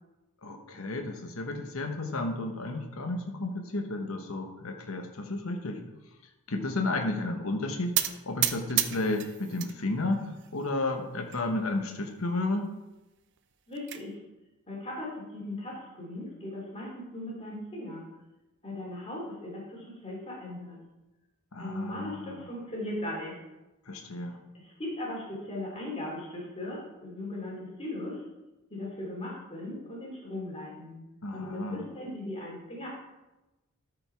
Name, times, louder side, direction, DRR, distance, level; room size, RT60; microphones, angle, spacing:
voice 1, 0.4-5.8 6.5-12.7 21.5-22.5 23.9-24.4 31.2-31.9, left 2 dB, 70° left, 4 dB, 1.1 m, -32 dB
sound 1, 8.0-9.7 10.1-10.8 11.3-11.4 11.7-11.8 12.2-12.3 13.4-14.0, right 12 dB, 55° right, 0.6 m, -31 dB
voice 2, 13.7-14.2 14.7-18.0 18.6-20.8 21.6-23.4 24.5-28.2 28.7-31.0 31.3-32.9, left 1 dB, 25° left, -3 dB, 2.8 m, -38 dB
13.0 x 5.2 x 4.6 m, 1.0 s
head